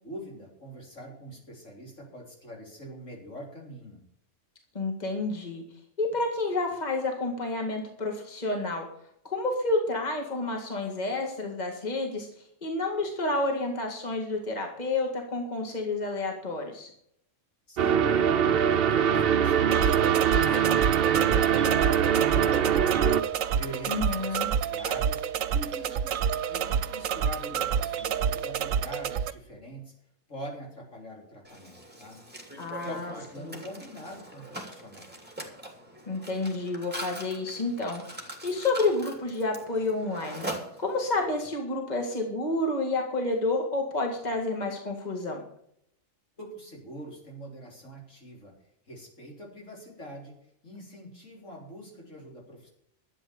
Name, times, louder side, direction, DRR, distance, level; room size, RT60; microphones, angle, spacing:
voice 1, 0.0-4.0 17.7-19.9 20.4-26.2 26.5-29.9 30.3-32.2 32.5-35.1 46.4-48.5 48.9-50.4 50.6-52.7, equal, 70° left, -1 dB, 4.1 m, -44 dB
voice 2, 4.7-5.6 6.0-8.8 9.2-12.3 12.6-16.9 23.9-24.5 32.6-33.1 33.4-33.6 36.1-40.5 40.8-45.4, left 2 dB, 35° left, 2 dB, 2.2 m, -30 dB
sound 1, 17.8-23.2, right 8 dB, 55° right, 0.8 m, -23 dB
sound 2, 19.7-29.3, right 8 dB, 80° right, 1.1 m, -29 dB
Mechanisms, 31.4-41.2, right 1 dB, 5° right, 2.5 m, -42 dB
12.5 x 8.5 x 7.0 m, 0.71 s
omnidirectional pair, 1.3 m